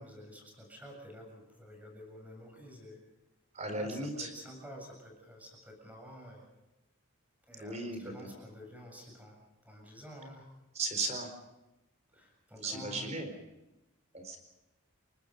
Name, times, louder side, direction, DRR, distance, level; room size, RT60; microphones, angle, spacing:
voice 1, 0.0-3.0 3.6-6.5 7.5-10.5 12.1-13.1, equal, 5° right, 1 dB, 7.5 m, -50 dB
voice 2, 3.5-4.3 7.6-8.3 10.7-11.3 12.6-13.4 14.1-14.4, right 2 dB, 30° right, 6 dB, 4.4 m, -36 dB
30.0 x 19.0 x 5.4 m, 0.97 s
head